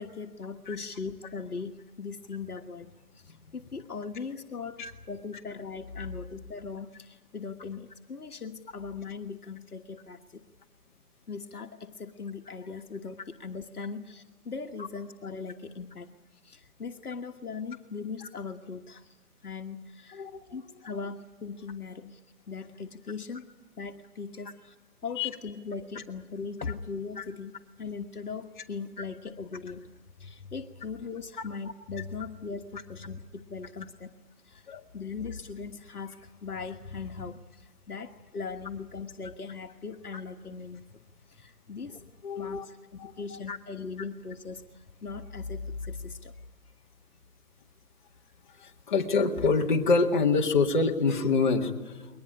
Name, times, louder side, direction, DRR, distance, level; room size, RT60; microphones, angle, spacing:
voice 1, 0.0-10.4 11.3-19.2 19.4-22.2 22.5-23.4 23.8-24.7 25.0-29.9 30.2-34.1 34.4-34.7 34.9-42.1 42.4-46.4, left 5 dB, 80° left, 4 dB, 1.5 m, -39 dB
voice 2, 20.1-20.4 25.2-25.3 27.2-27.3 34.7-34.8 42.2-42.7 43.0-43.1 43.5-43.6 48.6-52.1, left 4 dB, 30° left, 2 dB, 2.1 m, -26 dB
22.5 x 20.0 x 9.9 m, 1.3 s
figure-of-eight pair, 165°, 45 cm